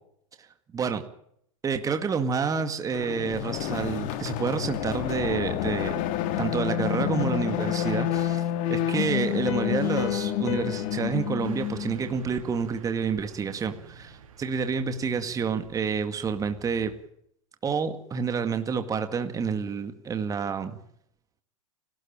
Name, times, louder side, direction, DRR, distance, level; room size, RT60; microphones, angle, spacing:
voice 1, 1.6-5.9 6.4-8.4 8.7-16.9 17.6-20.8, right 6 dB, 20° right, 8 dB, 2.2 m, -29 dB
sound 1, 2.9-12.1, left 11 dB, 50° left, 2.7 m, -29 dB
Piano, 9.5-12.9, left 11 dB, 65° left, 2.2 m, -38 dB
Car passing by / Truck, 11.4-17.0, right 7 dB, 80° right, 4.4 m, -48 dB
30.0 x 13.0 x 9.0 m, 0.72 s
hypercardioid pair, 120°, 17 cm